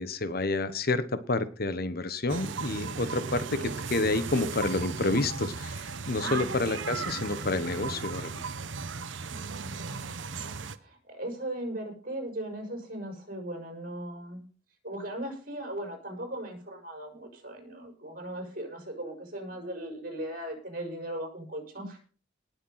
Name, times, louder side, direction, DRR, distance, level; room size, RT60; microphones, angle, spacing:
voice 1, 0.0-8.4, left 2 dB, 55° left, 13 dB, 1.2 m, -29 dB
sound 1, 2.3-10.8, right 4 dB, 80° right, 1.0 m, -36 dB
voice 2, 6.2-6.6 9.3-14.4 14.8-22.0, right 1 dB, 50° right, 3 dB, 5.7 m, -38 dB
19.0 x 7.0 x 5.8 m, 0.39 s
head